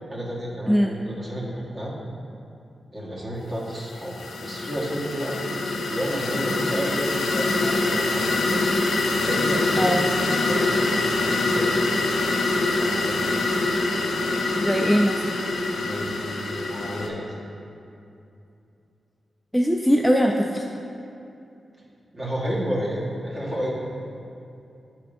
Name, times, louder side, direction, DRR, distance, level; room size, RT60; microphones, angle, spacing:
voice 1, 0.1-1.9 2.9-4.2 4.4-5.4 5.9-8.6 9.2-11.9 12.8-13.3 15.8-17.3 22.1-23.7, equal, 35° right, -5 dB, 1.3 m, -31 dB
sound 1, 3.7-17.1, left 2 dB, 90° left, 0.6 m, -24 dB
voice 2, 14.6-15.2 19.5-20.6, equal, ahead, 1 dB, 0.3 m, -21 dB
9.3 x 4.3 x 2.5 m, 2.7 s
wide cardioid pair, 90°, 0 cm